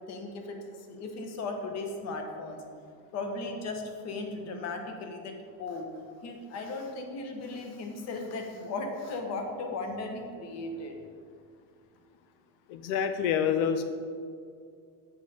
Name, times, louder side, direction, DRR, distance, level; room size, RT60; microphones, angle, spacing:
voice 1, 0.1-0.6 0.9-2.6 3.1-5.3 5.6-5.9 6.2-10.9, left 3 dB, 40° left, 4 dB, 1.0 m, -36 dB
voice 2, 12.7-13.8, left 8 dB, 90° left, 8 dB, 0.6 m, -27 dB
7.6 x 5.5 x 5.0 m, 2.3 s
cardioid pair, 160°, 41 cm